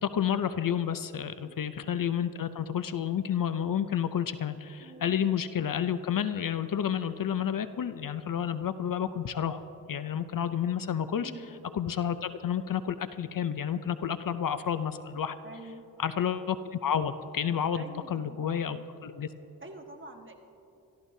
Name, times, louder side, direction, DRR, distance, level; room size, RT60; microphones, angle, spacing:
voice 1, 0.0-9.6 9.9-11.3 11.7-15.4 16.0-19.3, left 8 dB, 60° left, 12 dB, 0.6 m, -30 dB
voice 2, 1.4-1.7 4.8-5.2 11.2-11.5 15.4-15.9 17.7-18.8 19.6-20.3, right 2 dB, 30° right, 3 dB, 1.5 m, -47 dB
26.0 x 14.0 x 2.7 m, 2.9 s
wide cardioid pair, 85°, 39 cm